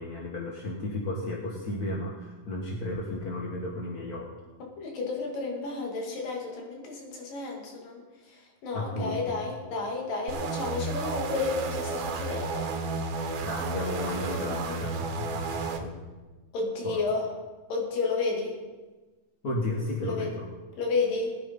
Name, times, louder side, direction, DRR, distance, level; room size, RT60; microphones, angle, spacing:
voice 1, 0.0-4.3 8.7-9.2 13.4-15.9 16.8-17.0 19.4-20.5, left 1 dB, 45° left, -2 dB, 1.2 m, -33 dB
voice 2, 4.6-12.7 14.5-14.8 16.5-17.3 17.7-18.6 20.0-20.3 20.8-21.4, left 3 dB, 85° left, 0 dB, 4.1 m, -32 dB
sound 1, 10.3-15.8, right 3 dB, 65° right, 2.1 m, -32 dB
19.0 x 9.3 x 5.3 m, 1.3 s
omnidirectional pair, 3.8 m